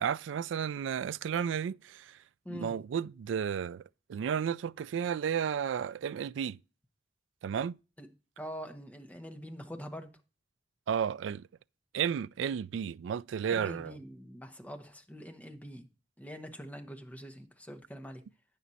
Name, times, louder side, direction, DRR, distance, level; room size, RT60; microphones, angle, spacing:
voice 1, 0.0-2.2 2.5-3.8 4.1-6.6 7.4-7.8 10.9-11.5 11.9-13.9, right 8 dB, 70° right, 0.3 m, -33 dB
voice 2, 8.4-10.1 13.5-15.9 16.2-18.2, equal, 10° left, 1.2 m, -44 dB
9.2 x 6.1 x 4.1 m
head